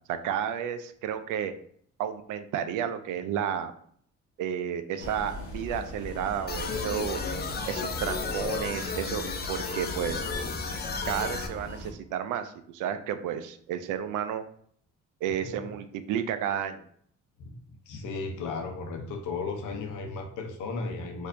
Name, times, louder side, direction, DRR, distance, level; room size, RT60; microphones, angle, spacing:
voice 1, 0.1-1.5 2.0-3.7 4.4-7.2 7.7-10.3 11.1-14.4 15.2-16.8, right 9 dB, 85° right, 10 dB, 0.5 m, -32 dB
sound 1, 5.0-11.9, left 1 dB, 50° left, 0.9 m, -40 dB
sound 2, 6.5-11.5, left 4 dB, 35° left, 0.5 m, -33 dB
voice 2, 15.3-15.7 17.4-17.5 17.9-21.3, left 4 dB, 90° left, 3 dB, 0.8 m, -35 dB
4.3 x 2.7 x 2.6 m, 0.62 s
cardioid pair, 90°, 30 cm